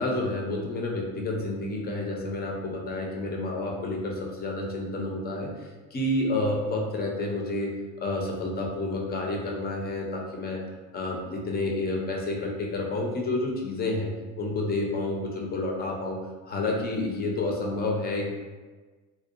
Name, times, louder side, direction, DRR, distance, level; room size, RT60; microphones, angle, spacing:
voice 1, 0.0-7.7 8.0-10.6 10.9-16.2 16.5-18.3, left 2 dB, 25° left, -1 dB, 0.4 m, -29 dB
2.6 x 2.1 x 2.4 m, 1.3 s
supercardioid pair, 105°, 43 cm